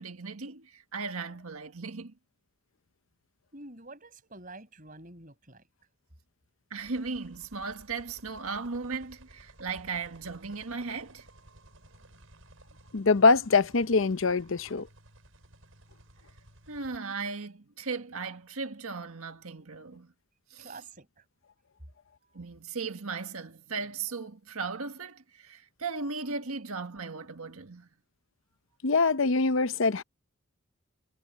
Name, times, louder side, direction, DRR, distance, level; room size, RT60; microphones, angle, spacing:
voice 1, 0.0-2.1 6.7-11.3 16.7-20.1 20.5-20.8 22.3-27.9, right 4 dB, 85° right, 1.6 m, -37 dB
voice 2, 3.5-5.7 20.6-21.2, right 2 dB, 40° right, 6.9 m, -48 dB
sound 1, 6.8-17.0, right 1 dB, 65° right, 7.6 m, -56 dB
voice 3, 12.9-14.9 28.8-30.0, left 4 dB, 60° left, 0.7 m, -23 dB
head